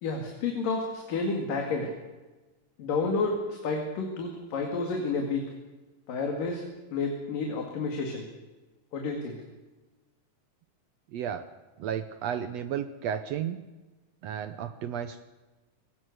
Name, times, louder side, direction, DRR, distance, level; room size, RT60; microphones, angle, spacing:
voice 1, 0.0-1.9 2.8-5.5 6.1-6.6 6.9-8.2 8.9-9.4, left 3 dB, 85° left, 2 dB, 3.8 m, -30 dB
voice 2, 11.1-11.5 11.8-13.6 14.2-15.2, right 9 dB, 70° right, 11 dB, 1.7 m, -33 dB
22.5 x 19.0 x 6.5 m, 1.2 s
omnidirectional pair, 3.8 m